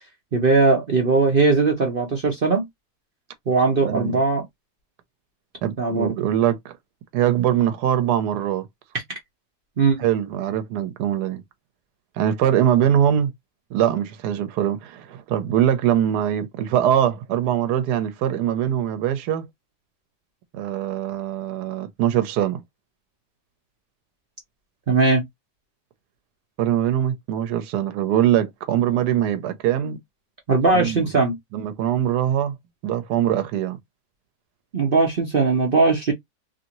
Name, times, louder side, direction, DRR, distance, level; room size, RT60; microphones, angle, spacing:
voice 1, 0.3-2.7 3.5-4.4 5.8-6.1 9.8-10.0 24.9-25.2 30.5-31.4 34.7-36.1, right 3 dB, 45° right, 0.7 m, -19 dB
voice 2, 3.8-4.2 5.6-6.7 7.1-8.6 10.0-11.4 12.2-13.3 13.7-19.4 20.5-22.6 26.6-30.0 30.7-31.1 31.5-32.5 32.8-33.8, right 10 dB, 85° right, 1.2 m, -22 dB
2.8 x 2.6 x 2.9 m
omnidirectional pair, 1.7 m